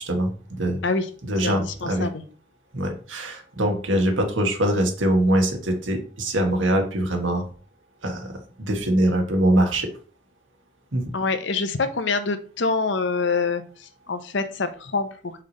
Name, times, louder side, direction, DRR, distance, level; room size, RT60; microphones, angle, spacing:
voice 1, 0.0-0.8 1.2-2.1 2.7-7.4 8.0-8.3 8.6-9.9 10.9-11.0, right 1 dB, 80° right, 3 dB, 1.4 m, -23 dB
voice 2, 1.4-2.2 11.1-15.4, left 4 dB, 65° left, 9 dB, 0.7 m, -26 dB
5.7 x 3.2 x 5.3 m, 0.41 s
head